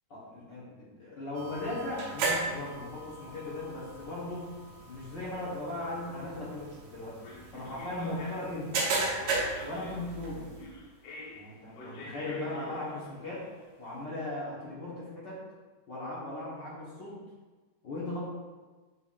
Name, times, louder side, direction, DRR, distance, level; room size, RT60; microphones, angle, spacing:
voice 1, 0.1-4.6 4.9-7.2 7.5-8.8 9.6-10.5 11.3-13.4 13.8-15.4 15.9-17.2 17.8-18.2, left 2 dB, 55° left, -8 dB, 1.2 m, -38 dB
sound 1, 1.3-10.7, right 3 dB, 65° right, 2.1 m, -36 dB
sound 2, 7.2-13.9, left 2 dB, 90° left, 1.4 m, -48 dB
6.5 x 5.7 x 2.5 m, 1.3 s
omnidirectional pair, 3.8 m